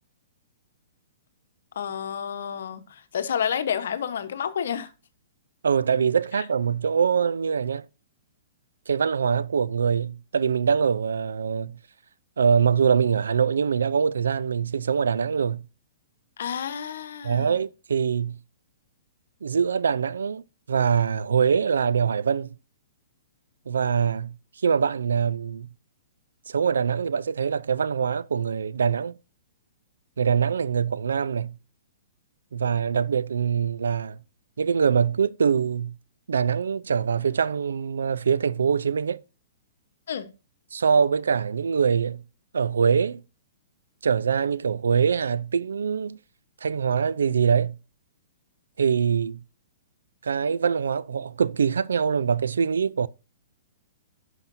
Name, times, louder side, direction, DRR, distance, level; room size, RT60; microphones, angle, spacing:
voice 1, 1.7-4.9 16.4-17.5 40.1-40.3, left 8 dB, 70° left, 0.9 m, -30 dB
voice 2, 5.6-7.9 8.9-11.8 12.4-15.6 17.2-18.4 19.4-20.4 20.7-22.5 23.7-24.3 24.6-25.7 26.5-29.2 30.2-31.6 32.5-34.2 34.6-35.9 36.3-39.2 40.7-42.2 42.5-43.2 44.0-46.2 46.6-47.8 48.8-49.4 50.2-53.1, right 6 dB, 80° right, 0.4 m, -23 dB
11.0 x 5.8 x 2.6 m
hypercardioid pair, 130°, 0 cm